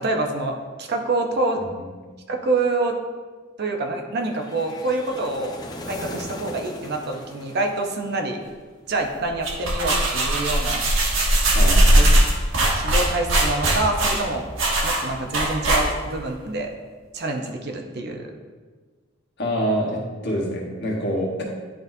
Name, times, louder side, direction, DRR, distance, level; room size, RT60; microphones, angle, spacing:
voice 1, 0.0-1.6 2.3-3.0 3.6-5.6 5.9-8.4 8.9-10.8 11.9-12.0 12.8-14.4 14.8-16.7 17.1-18.3, right 2 dB, 55° right, 3 dB, 0.7 m, -26 dB
sound 1, 4.3-8.5, left 1 dB, 20° left, 0.6 m, -38 dB
sound 2, 9.3-16.2, right 1 dB, 70° right, 1.2 m, -19 dB
voice 2, 11.5-12.0 19.4-21.4, equal, 60° left, -3 dB, 1.4 m, -26 dB
10.0 x 4.0 x 2.7 m, 1.4 s
head